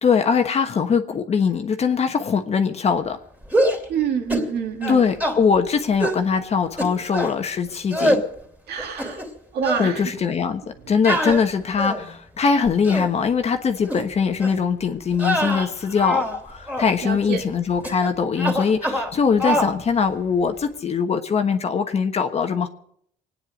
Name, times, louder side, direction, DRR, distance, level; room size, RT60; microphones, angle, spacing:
voice 1, 0.0-3.2 4.9-8.2 9.8-10.6 10.9-22.7, left 6 dB, 40° left, 6 dB, 1.2 m, -22 dB
sound 1, 3.4-3.9 4.3-4.5 4.8-5.4 6.0-6.2 6.8-7.4 7.9-8.3 8.8-9.4 9.6-9.9 11.0-12.1 12.7-13.1 13.8-14.0 14.4-14.6 15.1-16.4 16.7-16.9 17.8-18.1 18.4-19.1 19.4-19.7, equal, 10° right, 3.1 m, -24 dB
voice 2, 3.9-5.1 8.7-9.2 9.5-10.2 11.1-11.2 17.0-17.4, right 7 dB, 70° right, 5 dB, 2.3 m, -27 dB
25.0 x 9.7 x 5.2 m, 0.67 s
cardioid pair, 110°, 17 cm